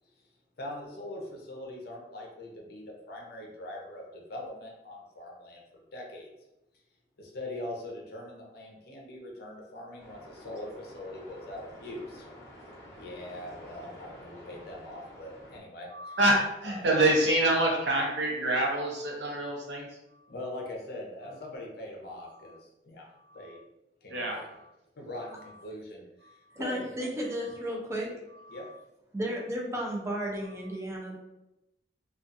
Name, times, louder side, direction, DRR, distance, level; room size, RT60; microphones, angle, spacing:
voice 1, 0.6-6.3 7.2-12.3 13.0-16.2 16.6-16.8 20.3-23.1 23.3-23.6 24.0-24.4 25.0-27.1 27.7-27.8 28.5-28.7, left 1 dB, 60° left, -1 dB, 0.6 m, -42 dB
sound 1, 10.0-15.6, equal, 15° left, 0.9 m, -49 dB
voice 2, 15.9-19.9 24.1-24.4, right 1 dB, 70° right, -2 dB, 0.7 m, -26 dB
voice 3, 26.6-28.1 29.1-31.1, equal, 15° right, -2 dB, 0.5 m, -33 dB
2.4 x 2.3 x 2.5 m, 0.94 s
head